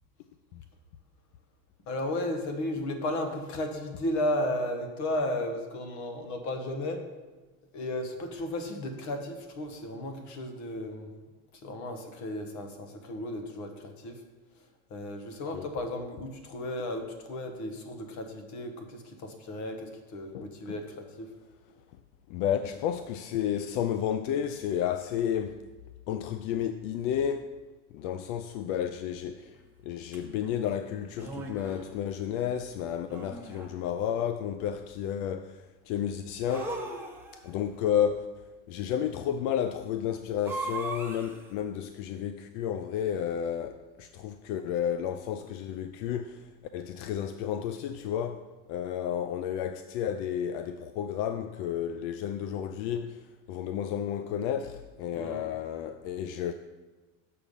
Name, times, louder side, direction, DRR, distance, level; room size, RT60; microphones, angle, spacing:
voice 1, 1.9-7.0 7.7-11.1 11.6-14.2 14.9-21.3 55.1-55.5, left 1 dB, 50° left, 1.3 m, -34 dB
voice 2, 20.3-20.8 22.3-25.6 26.1-27.5 27.9-29.6 29.8-36.8 37.3-56.5, left 9 dB, 80° left, 0.5 m, -32 dB
sound 1, 30.1-30.2 31.1-31.9 33.1-33.8 36.5-37.5 40.4-41.5, right 3 dB, 5° right, 1.0 m, -38 dB
7.1 x 6.7 x 5.4 m
cardioid pair, 150°, 36 cm